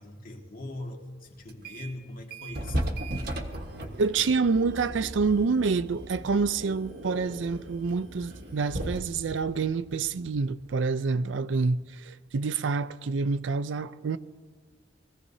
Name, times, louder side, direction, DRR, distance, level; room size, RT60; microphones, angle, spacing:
voice 1, 0.0-2.8, left 1 dB, 50° left, 1.8 m, -41 dB
sound 1, 1.5-2.0 2.3-10.8, right 1 dB, 55° right, 1.4 m, -37 dB
voice 2, 4.0-14.2, right 4 dB, 75° right, 0.5 m, -27 dB
21.5 x 15.5 x 2.8 m
head